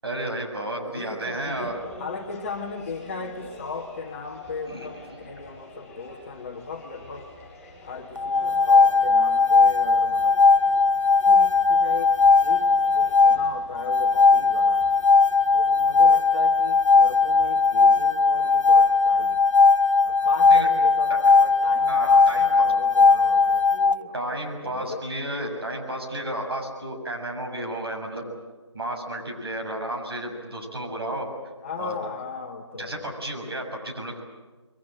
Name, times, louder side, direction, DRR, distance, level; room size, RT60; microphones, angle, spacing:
voice 1, 0.0-1.8 4.7-5.2 20.5-20.7 21.9-22.7 24.1-28.3 28.7-31.3 31.8-32.0 32.7-34.1, right 1 dB, 55° right, 2 dB, 7.1 m, -32 dB
voice 2, 0.8-7.3 7.8-14.9 15.5-19.4 20.0-24.2 24.6-25.0 31.6-33.1, left 5 dB, 25° left, 2 dB, 1.5 m, -37 dB
sound 1, 1.3-17.6, left 1 dB, 5° left, 8.0 m, -48 dB
sound 2, 8.2-24.0, left 4 dB, 85° left, 0.7 m, -18 dB
26.5 x 22.5 x 8.8 m, 1.2 s
figure-of-eight pair, 160°, 15 cm